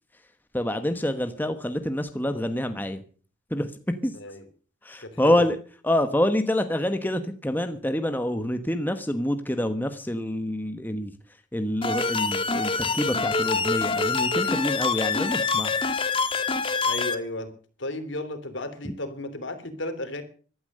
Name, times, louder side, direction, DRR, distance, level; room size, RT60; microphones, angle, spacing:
voice 1, 0.5-3.0 3.5-3.7 4.0-4.1 4.8-5.6 5.8-11.1 11.5-15.8, left 1 dB, 10° left, 8 dB, 1.1 m, -26 dB
voice 2, 4.1-4.5 5.0-5.5 16.8-17.5 17.8-20.2, left 1 dB, 70° left, 10 dB, 3.1 m, -34 dB
sound 1, 11.8-17.2, left 4 dB, 25° left, 1.5 m, -25 dB
15.0 x 12.5 x 6.7 m, 0.42 s
head